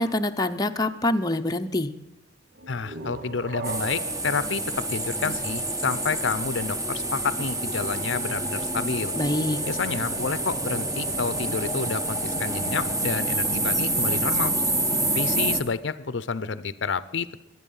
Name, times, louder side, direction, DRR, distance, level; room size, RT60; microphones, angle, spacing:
voice 1, 0.0-1.9 9.1-9.6, left 1 dB, 20° left, 5 dB, 0.7 m, -25 dB
sound 1, 2.5-6.1, right 3 dB, 50° right, 0.9 m, -39 dB
voice 2, 2.7-9.1 9.7-14.5 15.1-17.3, left 5 dB, 70° left, 16 dB, 0.7 m, -29 dB
sound 2, 3.6-15.6, right 2 dB, 20° right, 1.2 m, -27 dB
23.5 x 9.5 x 5.5 m, 0.93 s
head